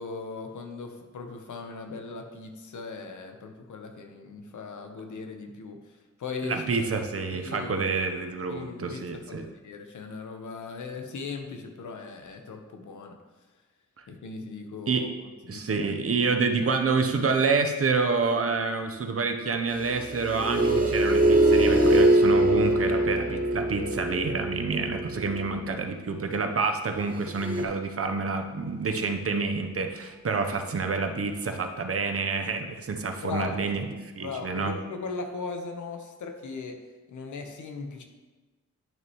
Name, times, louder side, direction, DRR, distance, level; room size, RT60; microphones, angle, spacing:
voice 1, 0.0-5.8 6.2-6.9 7.3-7.8 8.5-13.1 14.1-15.1 15.4-15.6 30.3-30.5 33.2-33.6 34.2-36.8 37.1-38.0, left 4 dB, 90° left, 4 dB, 1.0 m, -38 dB
voice 2, 6.4-9.5 14.9-15.1 15.5-33.8 34.1-34.7, right 4 dB, 50° right, 5 dB, 0.9 m, -28 dB
sound 1, 19.7-25.7 27.3-27.6, right 1 dB, 30° right, 1.5 m, -23 dB
10.5 x 6.3 x 3.1 m, 1.3 s
wide cardioid pair, 100°, 29 cm